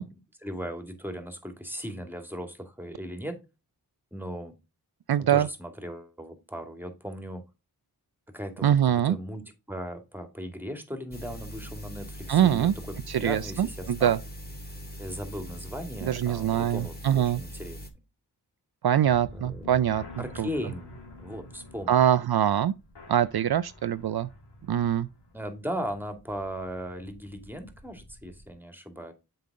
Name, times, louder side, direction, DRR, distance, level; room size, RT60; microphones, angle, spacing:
voice 1, 0.0-3.4 4.1-4.5 5.2-7.4 8.3-12.7 13.2-14.2 15.0-17.8 19.3-19.7 20.2-22.0 25.3-29.1, equal, 5° right, 2.4 m, -37 dB
voice 2, 5.1-5.5 8.6-9.2 12.3-12.7 13.1-14.2 16.0-17.4 18.8-20.0 20.4-20.5 21.9-22.7 23.1-24.3 24.7-25.1, right 10 dB, 65° right, 0.5 m, -23 dB
sound 1, 11.1-17.9, equal, 20° left, 2.3 m, -41 dB
sound 2, 19.0-28.5, left 2 dB, 85° left, 2.6 m, -48 dB
7.6 x 5.5 x 3.6 m
cardioid pair, 45°, 41 cm